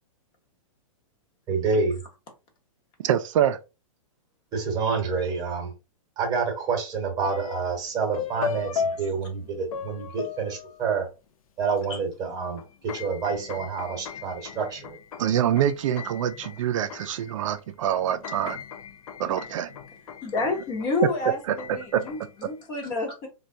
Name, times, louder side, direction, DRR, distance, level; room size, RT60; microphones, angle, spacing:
voice 1, 1.5-2.0 4.5-5.7 6.2-11.1 11.6-12.6 12.9-15.0, right 5 dB, 20° right, 0.9 m, -28 dB
voice 2, 3.0-3.6 15.2-18.6 19.2-19.7 21.9-22.0, right 10 dB, 65° right, 0.4 m, -25 dB
sound 1, 7.2-7.8 8.1-11.1 11.8-11.9 12.2-17.6 18.0-22.4, left 6 dB, 85° left, 0.5 m, -37 dB
voice 3, 20.2-23.3, left 3 dB, 25° left, 0.8 m, -29 dB
3.2 x 2.2 x 2.6 m
hypercardioid pair, 150°, 18 cm